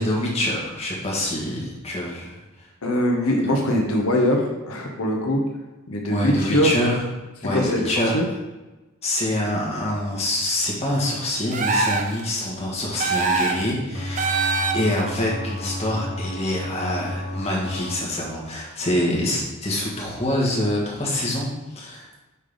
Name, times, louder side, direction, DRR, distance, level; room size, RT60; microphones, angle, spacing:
voice 1, 0.0-2.4 6.1-7.0 7.4-8.2 9.0-14.5 14.7-22.2, left 1 dB, 30° left, -4 dB, 1.5 m, -25 dB
voice 2, 2.8-5.4 5.9-6.7 7.5-8.3, left 1 dB, 80° left, 1 dB, 0.9 m, -22 dB
sound 1, 11.5-12.2 13.0-13.7 14.2-15.0, right 3 dB, 35° right, 0.6 m, -23 dB
sound 2, 13.9-18.0, left 1 dB, 60° left, 1.0 m, -32 dB
5.5 x 3.8 x 5.1 m, 1.1 s
head